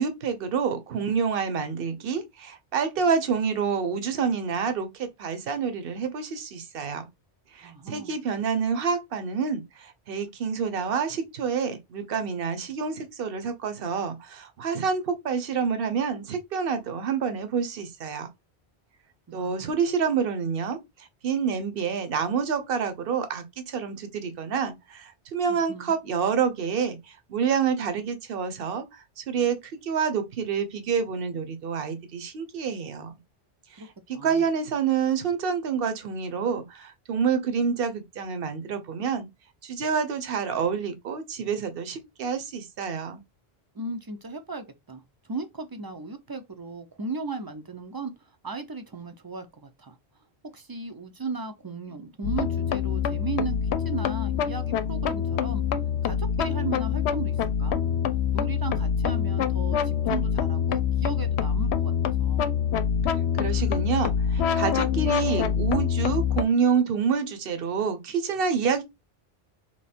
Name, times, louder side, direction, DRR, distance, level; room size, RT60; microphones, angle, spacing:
voice 1, 0.0-7.1 7.6-18.3 19.3-33.1 34.1-39.3 39.6-43.2 63.4-68.8, right 6 dB, 65° right, 1.0 m, -28 dB
voice 2, 7.6-8.2 19.3-19.7 25.5-25.9 33.8-33.9 34.1-34.5 43.7-50.0 50.5-55.6 56.0-57.8 58.3-62.4, right 3 dB, 30° right, 0.5 m, -36 dB
sound 1, 52.2-66.4, left 8 dB, 90° left, 0.8 m, -25 dB
3.4 x 3.0 x 4.2 m
omnidirectional pair, 1.1 m